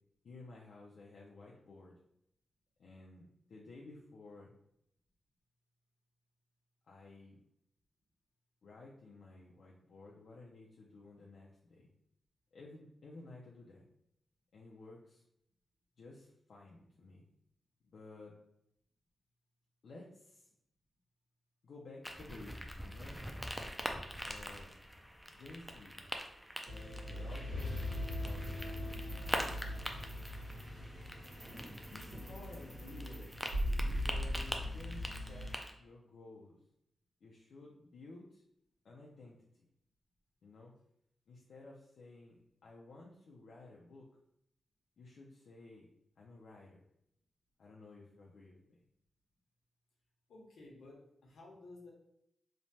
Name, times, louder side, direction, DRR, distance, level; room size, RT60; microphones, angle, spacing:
voice 1, 0.2-1.9 2.8-4.5 6.9-7.4 8.6-11.9 12.5-13.8 14.5-15.2 16.0-17.2 17.8-18.4 19.8-20.5 21.6-23.2 24.2-24.7 25.3-26.0 27.1-27.8 28.2-29.3 29.6-30.0 31.8-33.4 33.8-35.5 35.8-36.6 37.2-38.4 38.8-39.7 40.4-40.7 41.3-44.1 45.0-45.9 46.2-46.9 47.6-48.8, left 2 dB, 70° left, -3 dB, 0.4 m, -54 dB
sound 1, 22.0-35.7, equal, ahead, 0.3 m, -44 dB
sound 2, 26.6-35.5, left 1 dB, 35° right, 1.1 m, -40 dB
sound 3, 27.2-34.4, right 1 dB, 20° right, 0.7 m, -58 dB
voice 2, 50.3-51.9, left 2 dB, 85° left, -2 dB, 0.9 m, -54 dB
3.1 x 2.1 x 2.7 m, 0.77 s
wide cardioid pair, 145°, 0 cm